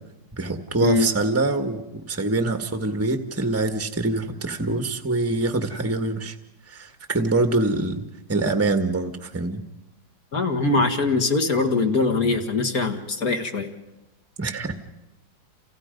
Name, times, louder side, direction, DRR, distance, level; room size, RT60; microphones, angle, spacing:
voice 1, 0.3-6.3 6.7-9.6 14.4-14.7, right 2 dB, 10° right, 7 dB, 1.4 m, -25 dB
voice 2, 10.3-13.7, left 3 dB, 50° left, 5 dB, 2.2 m, -22 dB
29.5 x 29.0 x 5.3 m, 0.95 s
omnidirectional pair, 2.0 m